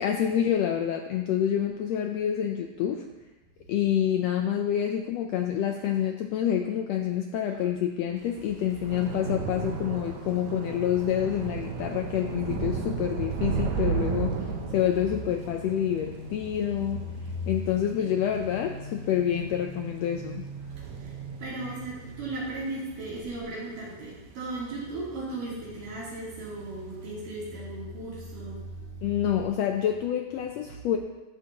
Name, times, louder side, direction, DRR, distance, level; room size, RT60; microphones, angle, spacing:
voice 1, 0.0-3.0 3.7-20.4 29.0-31.0, left 10 dB, 90° left, 4 dB, 1.4 m, -27 dB
Thunder / Rain, 8.3-24.9 25.2-25.7 25.9-26.1, right 5 dB, 70° right, 2.3 m, -35 dB
sound 1, 9.2-12.8 13.4-16.7 17.7-22.9 23.2-23.5, equal, 25° right, 3.8 m, -45 dB
voice 2, 20.9-29.1, right 2 dB, 85° right, -8 dB, 4.7 m, -36 dB
13.5 x 12.0 x 2.9 m, 1.1 s
omnidirectional pair, 3.7 m